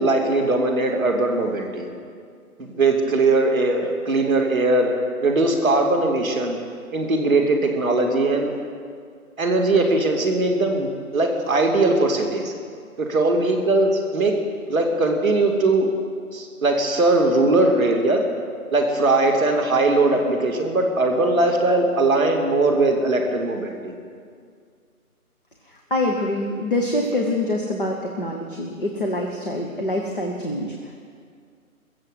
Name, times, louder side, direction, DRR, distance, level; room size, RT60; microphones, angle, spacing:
voice 1, 0.0-1.9 2.6-4.9 5.2-6.6 6.9-8.6 9.4-12.5 13.0-14.3 14.7-15.9 16.3-18.2 18.7-23.9, right 2 dB, 15° right, -1 dB, 1.6 m, -20 dB
voice 2, 25.6-31.0, left 1 dB, 35° left, 0 dB, 1.3 m, -25 dB
22.0 x 7.6 x 7.9 m, 2.2 s
hypercardioid pair, 180°, 44 cm